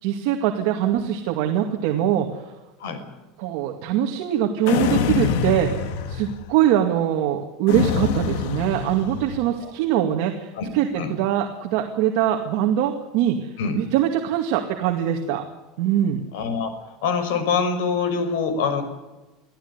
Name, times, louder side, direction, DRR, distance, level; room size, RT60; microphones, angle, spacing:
voice 1, 0.0-2.5 3.4-15.4 15.8-16.2, right 10 dB, 55° right, 3 dB, 2.3 m, -23 dB
sound 1, 4.7-6.5 7.7-9.5, left 7 dB, 60° left, 2.0 m, -25 dB
voice 2, 16.3-16.7 17.0-18.8, left 5 dB, 80° left, 9 dB, 5.7 m, -24 dB
24.5 x 15.0 x 9.8 m, 1.1 s
cardioid pair, 175°, 0 cm